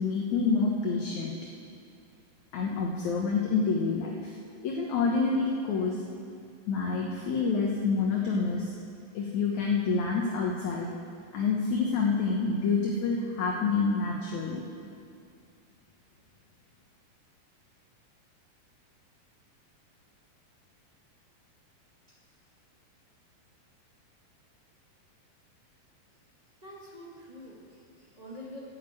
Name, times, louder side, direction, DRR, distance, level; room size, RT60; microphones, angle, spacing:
voice 1, 0.0-1.4 2.5-4.4 4.6-6.0 6.7-8.7 9.1-10.9 11.3-14.6, left 4 dB, 65° left, -1 dB, 2.2 m, -27 dB
voice 2, 26.6-28.6, left 1 dB, 55° right, -5 dB, 0.4 m, -46 dB
12.0 x 8.8 x 8.4 m, 2.2 s
omnidirectional pair, 4.0 m